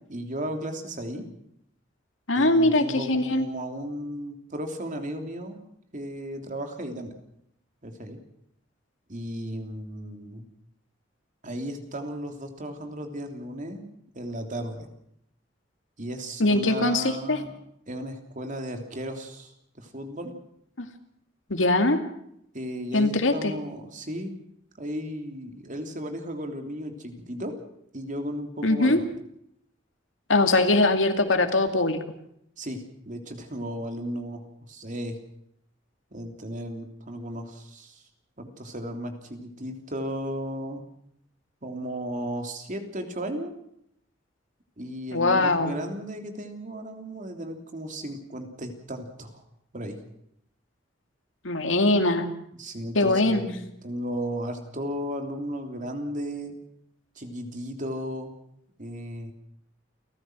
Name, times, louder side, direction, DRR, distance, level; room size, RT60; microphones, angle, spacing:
voice 1, 0.1-1.3 2.3-5.6 5.9-7.1 7.8-8.2 9.1-10.4 11.4-13.8 14.1-14.9 16.0-17.5 17.9-20.3 22.5-24.4 24.8-27.5 27.9-29.0 32.6-35.2 36.1-38.0 38.4-40.8 41.6-43.5 44.8-49.4 49.7-50.0 52.6-56.5 57.1-58.3 58.8-59.3, equal, 45° right, 5 dB, 3.2 m, -35 dB
voice 2, 2.3-3.5 16.4-17.4 20.8-20.9 21.5-22.0 22.9-23.5 28.6-29.0 30.3-32.0 45.1-45.7 51.4-52.2 53.0-53.5, left 2 dB, 85° left, 7 dB, 2.3 m, -22 dB
29.5 x 14.5 x 6.2 m, 0.73 s
head